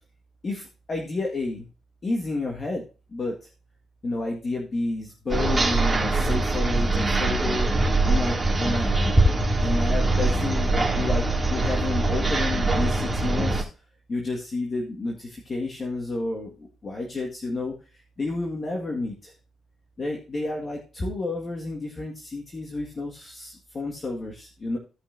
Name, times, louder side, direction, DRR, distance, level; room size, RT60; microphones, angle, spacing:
voice 1, 0.4-1.7 2.0-2.8 3.1-3.5 4.0-7.7 8.0-8.9 9.6-13.7 14.1-19.3 20.0-24.8, left 2 dB, 35° left, 0 dB, 1.8 m, -30 dB
sound 1, 5.3-13.6, right 2 dB, 20° right, 2.4 m, -23 dB
16.5 x 5.6 x 2.7 m, 0.34 s
cardioid pair, 90°, 0 cm